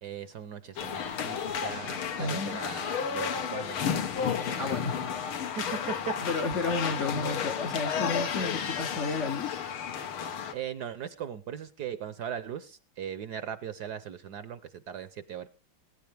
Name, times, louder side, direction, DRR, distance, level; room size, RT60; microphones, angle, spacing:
voice 1, 0.0-4.7 5.6-6.1 10.5-15.5, right 8 dB, 60° right, 13 dB, 1.1 m, -39 dB
sound 1, 0.8-10.5, left 7 dB, 80° left, 2.1 m, -32 dB
voice 2, 2.2-2.6 4.6-5.0 6.2-9.6, left 3 dB, 50° left, 5 dB, 0.9 m, -32 dB
21.5 x 10.0 x 3.4 m, 0.33 s
omnidirectional pair, 2.3 m